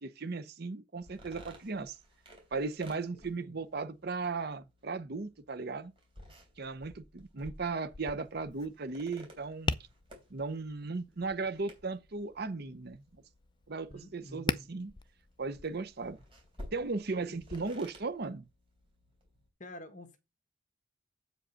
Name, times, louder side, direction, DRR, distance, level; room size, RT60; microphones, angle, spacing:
voice 1, 0.0-2.0 2.5-5.9 6.6-9.8 10.3-13.0 13.7-14.9 15.4-16.2 16.7-18.4, right 3 dB, 50° right, 0.7 m, -36 dB
Sitting on chair, 1.0-19.5, equal, 25° right, 3.5 m, -55 dB
voice 2, 3.1-3.6 13.9-14.7 17.3-17.4 19.6-20.2, left 1 dB, 40° left, 1.5 m, -49 dB
Tap, 7.9-17.6, left 3 dB, 25° left, 0.4 m, -42 dB
7.9 x 5.0 x 6.3 m
head